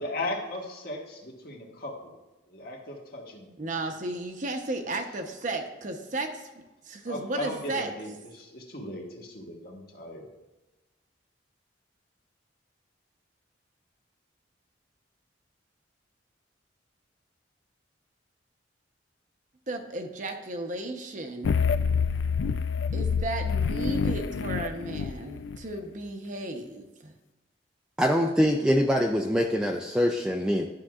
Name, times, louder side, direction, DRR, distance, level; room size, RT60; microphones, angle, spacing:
voice 1, 0.0-2.1 2.5-3.5 7.0-10.2, left 1 dB, 50° left, 0 dB, 1.4 m, -37 dB
voice 2, 3.6-6.5 6.9-7.9 19.7-21.7 22.9-27.1, right 2 dB, 40° right, 4 dB, 0.8 m, -34 dB
sound 1, 21.4-25.6, left 5 dB, 80° left, 0.4 m, -27 dB
voice 3, 28.0-30.7, equal, 5° right, 1 dB, 0.4 m, -24 dB
11.5 x 6.2 x 2.4 m, 1.1 s
head